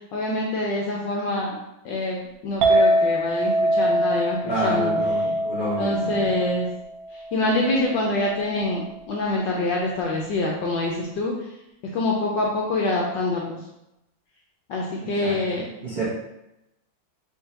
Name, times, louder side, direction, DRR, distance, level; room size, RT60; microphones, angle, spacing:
voice 1, 0.1-1.6 1.8-4.9 5.8-6.7 7.3-11.3 11.9-13.6 14.7-15.7, left 2 dB, 70° left, -2 dB, 1.1 m, -25 dB
Chink clink, 2.6-8.9, right 1 dB, 90° right, 0.8 m, -24 dB
voice 2, 4.4-6.3 15.0-16.0, right 1 dB, 30° right, -8 dB, 0.8 m, -29 dB
4.6 x 3.1 x 2.8 m, 0.88 s
omnidirectional pair, 2.4 m